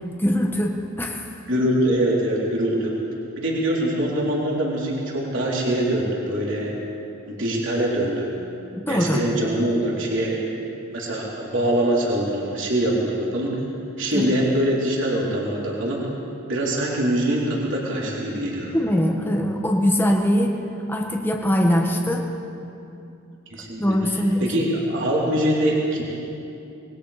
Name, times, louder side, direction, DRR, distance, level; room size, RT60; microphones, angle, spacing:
voice 1, 0.2-1.4 8.8-9.3 14.1-14.2 18.7-20.5 20.9-22.3 23.8-24.5, equal, 10° left, 0 dB, 1.5 m, -22 dB
voice 2, 1.5-2.9 3.4-6.7 7.3-8.3 8.9-10.4 10.9-13.6 14.0-16.0 16.5-18.7 23.5-24.0 24.4-26.0, right 1 dB, 55° right, -4 dB, 3.7 m, -23 dB
26.5 x 21.5 x 5.1 m, 2.7 s
head